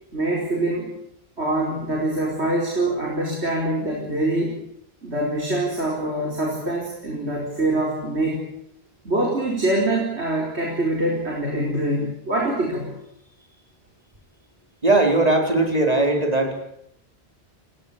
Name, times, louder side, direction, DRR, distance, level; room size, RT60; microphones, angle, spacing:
voice 1, 0.1-0.9 1.4-4.5 5.0-8.4 9.0-13.0, right 1 dB, 80° right, -1 dB, 5.0 m, -24 dB
voice 2, 14.8-16.5, right 2 dB, 35° right, 3 dB, 4.8 m, -19 dB
29.5 x 18.0 x 8.7 m, 0.73 s
omnidirectional pair, 1.1 m